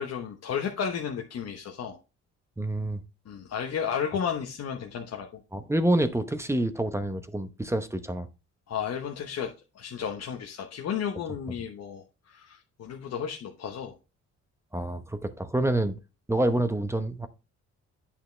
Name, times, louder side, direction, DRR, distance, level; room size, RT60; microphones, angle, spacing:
voice 1, 0.0-2.0 3.3-5.4 8.7-13.9, left 7 dB, 55° left, 1.1 m, -33 dB
voice 2, 2.6-3.0 5.5-8.3 14.7-16.0 16.3-17.3, right 1 dB, 10° right, 0.9 m, -27 dB
8.6 x 5.8 x 3.3 m
cardioid pair, 90°, 30 cm